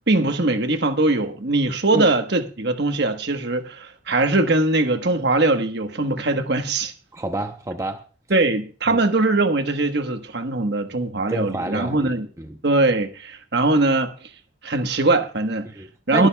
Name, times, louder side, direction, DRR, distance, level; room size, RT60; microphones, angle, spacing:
voice 1, 0.1-6.9 8.3-12.3 12.6-14.1 14.6-15.7 16.1-16.3, right 2 dB, 60° right, 1.3 m, -21 dB
voice 2, 7.1-8.1 8.9-9.0 11.3-12.1 12.4-12.6 15.7-16.3, right 1 dB, 15° right, 0.7 m, -28 dB
22.0 x 10.5 x 2.3 m
head